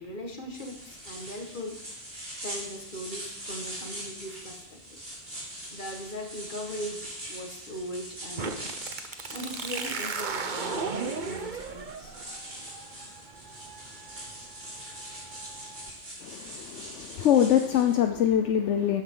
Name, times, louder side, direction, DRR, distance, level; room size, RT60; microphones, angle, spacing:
voice 1, 0.0-1.8 2.4-5.0 5.7-8.8 9.3-12.1, equal, 40° left, 2 dB, 1.8 m, -39 dB
sound 1, 0.5-18.0, right 1 dB, 70° right, 4.5 m, -42 dB
sound 2, 8.4-15.9, right 5 dB, 45° right, 0.9 m, -37 dB
voice 2, 16.2-19.0, left 10 dB, 75° left, 5 dB, 1.0 m, -24 dB
12.5 x 9.4 x 3.8 m, 0.84 s
omnidirectional pair, 1.2 m